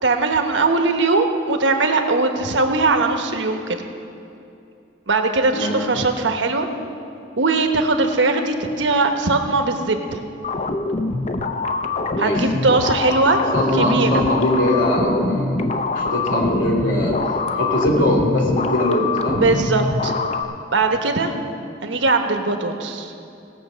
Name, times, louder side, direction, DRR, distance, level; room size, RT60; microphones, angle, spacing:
voice 1, 0.0-3.8 5.1-6.7 7.4-10.2 12.2-13.4 13.8-14.2 19.3-20.1 20.7-21.3 21.8-23.1, right 3 dB, 80° right, 5 dB, 1.1 m, -20 dB
voice 2, 5.5-6.0 12.2-12.5 13.3-15.6 15.9-17.2 17.5-19.4, left 1 dB, 90° left, -1 dB, 2.8 m, -21 dB
sound 1, 10.4-20.4, left 3 dB, 35° left, 0.6 m, -24 dB
18.0 x 6.0 x 7.3 m, 2.6 s
head